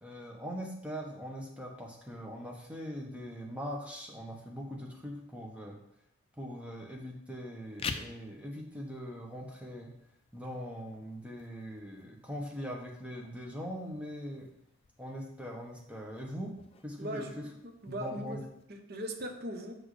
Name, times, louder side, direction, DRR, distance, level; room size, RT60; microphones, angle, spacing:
voice 1, 0.0-5.8 6.4-9.9 10.3-14.5 15.0-16.5 16.8-17.3 17.9-18.4, equal, 5° right, -2 dB, 1.1 m, -41 dB
sound 1, 7.6-18.6, left 5 dB, 25° left, 0.3 m, -49 dB
voice 2, 17.0-19.7, equal, 45° right, 4 dB, 0.8 m, -40 dB
6.3 x 6.2 x 3.2 m, 0.76 s
head